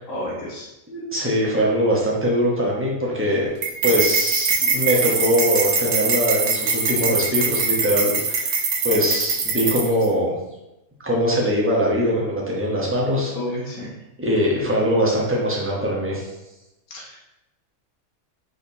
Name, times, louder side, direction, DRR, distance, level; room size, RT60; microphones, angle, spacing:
voice 1, 0.1-0.7 13.3-13.9 16.9-17.2, left 1 dB, 70° left, -4 dB, 1.4 m, -30 dB
voice 2, 0.9-3.5 3.8-8.5 8.8-10.3 11.0-13.3 14.2-16.3, equal, 10° right, -4 dB, 0.7 m, -22 dB
sound 1, 3.6-10.1, right 5 dB, 65° right, 1.0 m, -22 dB
4.3 x 3.7 x 2.7 m, 0.94 s
omnidirectional pair, 1.5 m